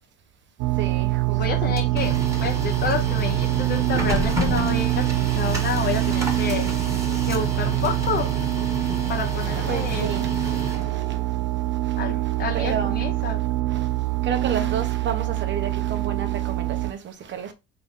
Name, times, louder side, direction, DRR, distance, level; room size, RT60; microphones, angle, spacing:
sound 1, 0.6-16.9, right 18 dB, 85° right, 0.6 m, -24 dB
voice 1, 0.8-1.8 9.2-11.4 11.8-13.0 13.2-13.3 13.7-13.9 14.2-17.5, right 7 dB, 40° right, 0.9 m, -32 dB
voice 2, 1.3-8.4 9.1-10.1 12.0-13.4, left 6 dB, 35° left, 0.8 m, -30 dB
Printer, 1.5-11.3, equal, 10° right, 1.6 m, -31 dB
3.9 x 3.7 x 3.7 m
cardioid pair, 120°, 29 cm